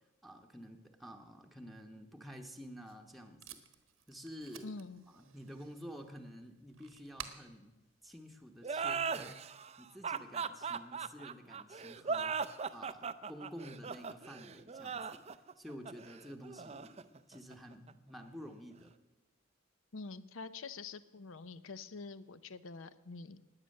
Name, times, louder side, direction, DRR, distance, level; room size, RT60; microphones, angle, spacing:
voice 1, 0.0-3.6 4.1-4.7 5.1-7.8 8.0-9.5 9.8-15.3 15.6-19.0, equal, ahead, 2 dB, 0.9 m, -50 dB
Packing tape duct tape, 2.5-9.0, right 8 dB, 80° right, 1.3 m, -54 dB
voice 2, 4.6-5.0 19.9-23.4, left 4 dB, 70° left, 14 dB, 0.7 m, -46 dB
sound 1, 8.6-17.9, right 5 dB, 30° right, 0.5 m, -39 dB
19.5 x 8.1 x 6.5 m, 1.1 s
head